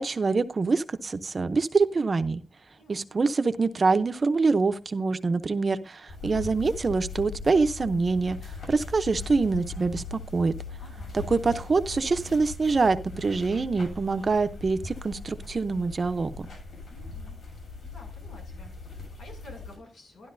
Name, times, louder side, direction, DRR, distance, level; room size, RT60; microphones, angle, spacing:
voice 1, 0.0-2.4 2.9-8.4 8.7-10.5 11.1-16.5, right 4 dB, 35° right, 11 dB, 0.7 m, -25 dB
voice 2, 2.7-3.2 10.8-11.2 16.9-17.4 17.8-20.3, left 2 dB, 85° left, 2 dB, 6.8 m, -51 dB
sound 1, 6.1-19.8, left 4 dB, 65° left, 6.9 m, -40 dB
12.5 x 12.5 x 2.6 m, 0.28 s
wide cardioid pair, 170°, 0 cm